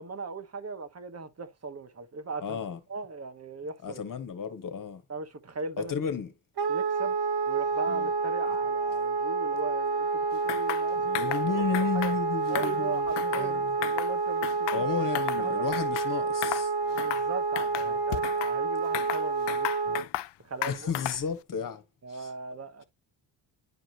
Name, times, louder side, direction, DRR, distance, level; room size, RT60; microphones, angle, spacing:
voice 1, 0.0-2.6 2.9-4.0 5.1-5.9 6.7-7.2 7.5-11.4 11.8-12.1 12.5-14.9 15.3-15.6 16.8-20.0 20.4-20.9 22.0-22.8, right 4 dB, 30° right, 1.6 m, -38 dB
voice 2, 2.4-2.8 3.8-5.0 5.8-6.3 7.9-8.1 10.9-13.7 14.7-16.7 17.8-17.9 19.8-20.0 20.7-21.8 22.1-22.3, left 6 dB, 40° left, 1.7 m, -33 dB
Wind instrument woodwind instrument, 6.6-20.1, right 4 dB, 55° right, 1.3 m, -29 dB
sound 1, 10.5-10.8 11.1-11.4 11.7-12.2 12.5-13.5 13.8-14.1 14.4-15.4 15.7-16.1 16.4-16.7 17.0-17.3 17.6-18.5 18.9-20.3 20.6-21.3, left 14 dB, 60° left, 0.6 m, -34 dB
10.5 x 5.0 x 2.9 m
cardioid pair, 110°, 47 cm